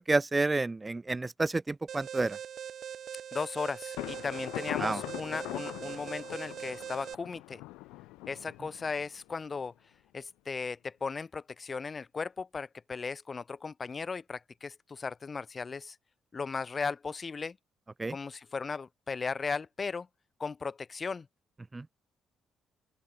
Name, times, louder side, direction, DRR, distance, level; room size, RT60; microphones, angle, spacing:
voice 1, 0.0-2.4 4.8-5.0 18.0-18.1 21.7-21.8, right 3 dB, 20° right, 0.7 m, -29 dB
Alarm, 1.9-7.1, right 9 dB, 60° right, 5.6 m, -42 dB
voice 2, 3.3-7.6 8.3-9.7 10.1-15.9 16.3-17.6 18.1-20.1 20.4-21.3, left 5 dB, 35° left, 1.2 m, -36 dB
Thunder, 4.0-9.6, left 21 dB, 90° left, 0.5 m, -42 dB
open air
supercardioid pair, 70°, 0 cm